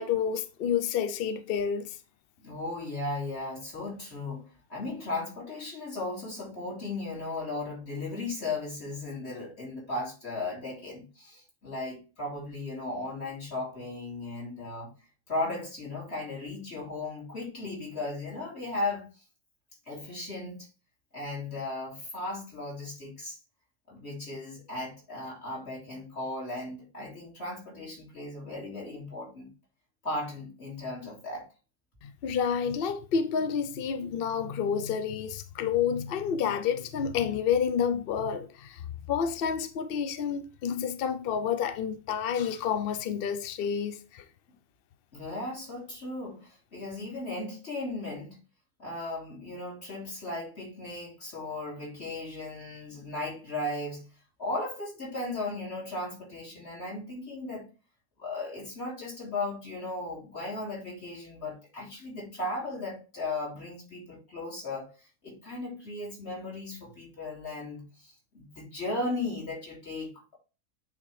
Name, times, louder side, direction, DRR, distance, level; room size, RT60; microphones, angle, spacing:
voice 1, 0.0-2.0 32.0-38.8 39.1-44.2, left 7 dB, 65° left, 0.5 m, -29 dB
voice 2, 2.4-14.9 15.3-19.1 19.9-20.7 21.1-23.4 23.9-29.5 30.0-31.5 45.1-48.4 48.8-54.0 54.4-57.7 58.2-64.9 65.2-70.4, left 2 dB, 45° left, 3.4 m, -36 dB
8.6 x 3.7 x 3.2 m
omnidirectional pair, 1.6 m